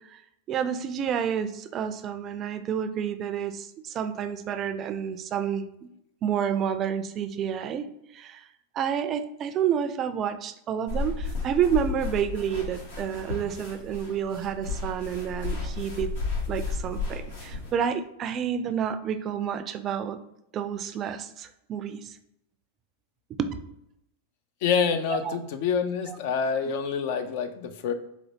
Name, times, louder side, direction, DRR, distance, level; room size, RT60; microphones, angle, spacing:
voice 1, 0.5-5.7 6.2-7.9 8.1-8.4 8.7-16.1 16.5-20.2 20.5-22.2 23.4-23.5 25.1-25.4 26.1-26.2, right 8 dB, 35° right, 9 dB, 0.3 m, -29 dB
sound 1, 10.9-17.7, left 4 dB, 80° left, 1.3 m, -33 dB
voice 2, 24.6-27.9, left 6 dB, 60° left, 9 dB, 0.4 m, -27 dB
4.3 x 2.1 x 2.7 m, 0.80 s
hypercardioid pair, 105°, 0 cm